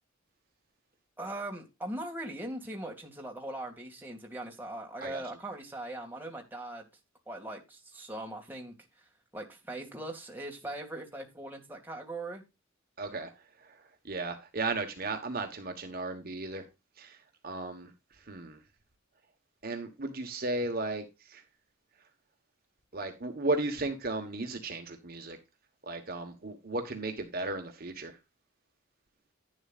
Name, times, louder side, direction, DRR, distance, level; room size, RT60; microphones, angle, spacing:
voice 1, 1.2-6.8 7.3-8.7 9.3-12.4, right 1 dB, 10° right, 2.2 m, -40 dB
voice 2, 13.0-13.3 14.0-16.6 17.0-17.2 17.4-17.9 18.3-18.6 19.6-21.4 22.9-25.4 25.9-28.1, right 2 dB, 45° right, 1.3 m, -35 dB
11.0 x 10.0 x 2.5 m
head